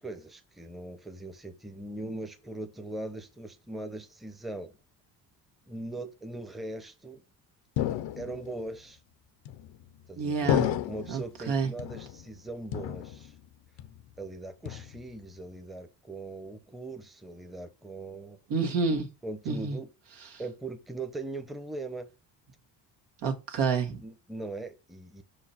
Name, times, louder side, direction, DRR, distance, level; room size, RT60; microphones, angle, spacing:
voice 1, 0.0-4.7 5.7-7.2 8.2-9.0 10.1-13.3 14.2-18.4 19.2-19.9 20.4-22.1 24.0-25.2, right 2 dB, ahead, 0.9 m, -40 dB
sound 1, 7.8-8.6 9.5-10.0 10.5-11.3 11.8-12.4 12.7-13.5 13.8-14.2 14.7-15.3, left 12 dB, 80° left, 0.8 m, -32 dB
voice 2, 10.2-10.7 11.1-11.2 11.5-11.7 18.5-19.1 19.4-19.8 20.2-20.4 23.2-24.0, right 5 dB, 70° right, 1.7 m, -28 dB
5.7 x 4.9 x 4.3 m
supercardioid pair, 85°, 44 cm